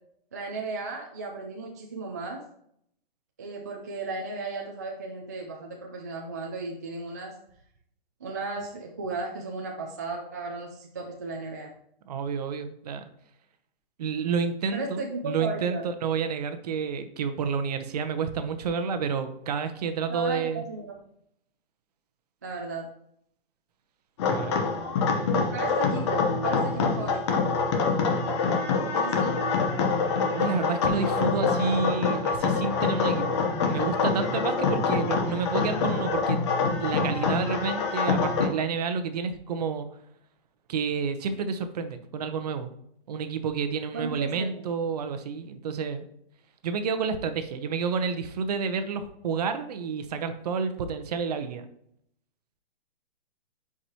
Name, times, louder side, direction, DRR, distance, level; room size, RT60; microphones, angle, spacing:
voice 1, 0.3-2.4 3.4-7.4 8.2-11.7 14.7-15.8 20.1-21.0 22.4-22.9 25.3-27.4 28.9-29.4 43.9-44.5, right 3 dB, 20° right, -1 dB, 0.3 m, -35 dB
voice 2, 12.1-13.0 14.0-20.6 24.3-24.6 28.0-28.4 30.3-33.4 33.7-36.4 36.8-39.9 40.7-42.7 43.1-46.0 46.6-51.6, right 5 dB, 40° right, 9 dB, 0.8 m, -30 dB
sound 1, 24.2-38.5, left 4 dB, 30° left, 0.8 m, -25 dB
9.9 x 4.8 x 2.8 m, 0.72 s
hypercardioid pair, 165°, 30 cm